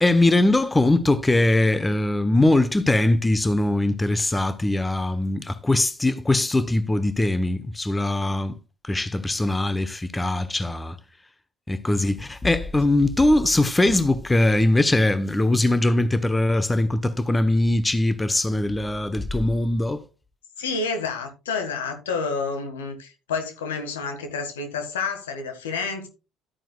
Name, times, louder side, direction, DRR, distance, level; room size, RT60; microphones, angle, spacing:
voice 1, 0.0-8.5 8.8-11.0 11.7-20.0, left 2 dB, 15° left, 0.9 m, -21 dB
voice 2, 20.6-26.1, left 4 dB, 80° left, 1.7 m, -29 dB
12.5 x 8.9 x 2.3 m
hypercardioid pair, 60°, 0 cm